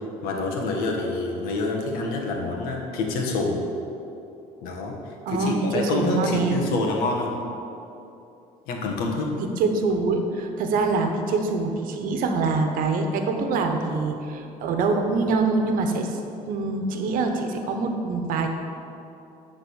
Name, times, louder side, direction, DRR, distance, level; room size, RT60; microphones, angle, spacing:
voice 1, 0.2-3.6 4.6-7.4 8.7-9.3, left 3 dB, 80° left, 0 dB, 1.5 m, -27 dB
voice 2, 5.3-6.6 9.6-16.2 16.5-18.5, right 3 dB, 70° right, 4 dB, 1.1 m, -24 dB
10.0 x 4.0 x 7.1 m, 2.8 s
cardioid pair, 100°, 15 cm